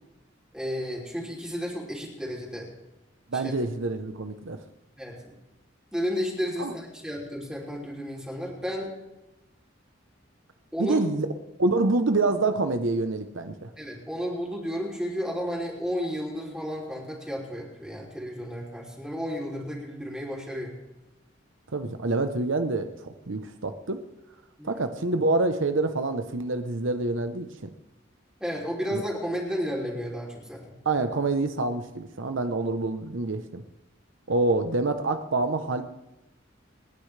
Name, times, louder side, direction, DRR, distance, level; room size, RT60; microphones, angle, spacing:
voice 1, 0.5-2.7 3.3-3.5 5.0-5.3 5.9-8.9 10.7-11.0 13.8-20.7 24.6-24.7 28.4-30.8, equal, 5° right, -4 dB, 3.1 m, -32 dB
voice 2, 3.3-4.6 6.6-6.7 10.8-11.3 11.6-13.7 21.7-24.0 24.6-27.7 28.9-29.0 30.9-33.6 34.3-35.8, right 2 dB, 85° right, 7 dB, 0.9 m, -26 dB
29.0 x 10.0 x 3.3 m, 0.98 s
head